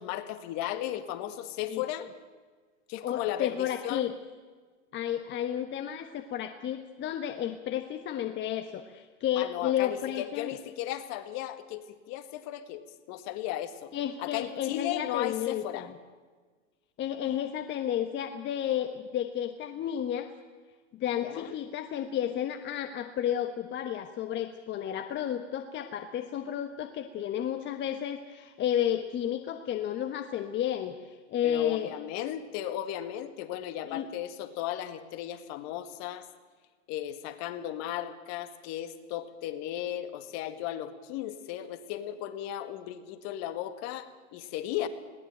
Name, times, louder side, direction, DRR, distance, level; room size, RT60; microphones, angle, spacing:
voice 1, 0.0-2.1 2.9-4.1 9.4-13.9 14.2-15.9 21.2-21.6 31.4-36.3 36.9-44.9, left 12 dB, 45° left, 10 dB, 2.0 m, -36 dB
voice 2, 3.0-4.1 4.9-10.5 13.9-15.9 17.0-20.3 20.9-31.9 33.9-34.1, left 10 dB, 30° left, 8 dB, 1.2 m, -32 dB
20.5 x 18.0 x 9.0 m, 1.4 s
hypercardioid pair, 125°, 37 cm